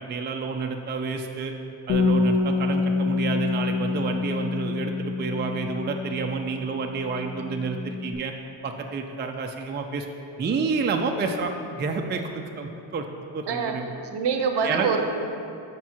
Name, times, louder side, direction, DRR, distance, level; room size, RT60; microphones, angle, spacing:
voice 1, 0.0-1.5 1.9-8.3 8.6-10.1 10.4-13.0 13.3-13.9 14.6-15.0, right 4 dB, 25° right, 3 dB, 0.4 m, -29 dB
Bass guitar, 1.9-6.6 6.9-8.1, left 3 dB, 55° left, 1.0 m, -26 dB
voice 2, 13.5-15.1, right 6 dB, 55° right, 5 dB, 0.8 m, -26 dB
5.2 x 4.6 x 5.7 m, 2.7 s
supercardioid pair, 60°, 49 cm